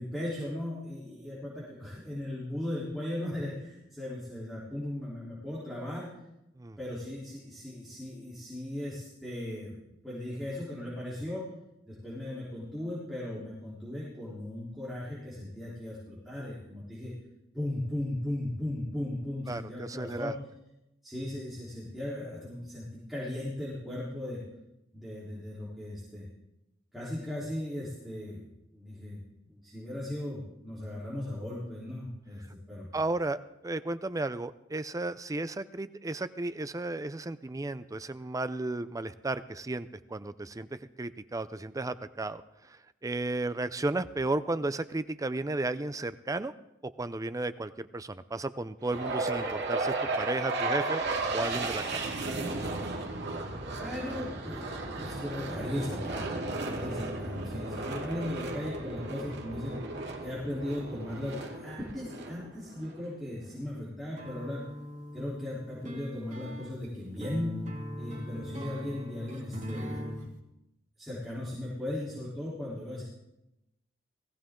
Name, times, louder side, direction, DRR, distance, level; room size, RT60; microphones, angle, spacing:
voice 1, 0.0-6.1 6.8-11.5 11.9-17.1 17.5-20.4 21.0-24.4 24.9-26.3 26.9-28.5 28.7-29.2 29.5-33.0 53.7-56.3 56.6-59.8 60.2-64.6 65.1-67.6 68.0-70.4 71.0-73.0, left 1 dB, ahead, -9 dB, 3.6 m, -37 dB
voice 2, 19.5-20.3 32.9-42.4 42.7-46.5 47.0-51.0 51.3-52.1, right 2 dB, 15° right, 13 dB, 0.5 m, -34 dB
sound 1, 48.8-63.0, right 2 dB, 60° right, 2.3 m, -34 dB
sound 2, 64.2-70.3, equal, 40° right, 2.4 m, -40 dB
18.5 x 15.0 x 3.8 m, 0.91 s
head